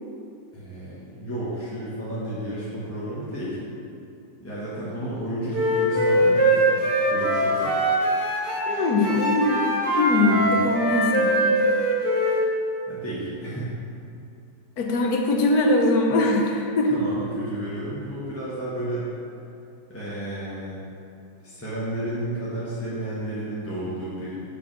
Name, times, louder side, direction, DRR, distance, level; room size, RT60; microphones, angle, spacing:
voice 1, 0.5-3.6 4.4-6.6 7.1-7.8 10.3-10.7 12.9-13.7 16.9-19.0 19.9-20.8 21.4-24.4, right 1 dB, 10° left, -10 dB, 1.1 m, -32 dB
Wind instrument woodwind instrument, 5.5-8.7 9.0-12.4, right 1 dB, 45° right, 1.3 m, -22 dB
voice 2, 8.7-9.6 9.9-11.6 14.8-16.9, left 2 dB, 70° left, 1 dB, 1.3 m, -22 dB
5.4 x 4.7 x 6.0 m, 2.6 s
omnidirectional pair, 1.8 m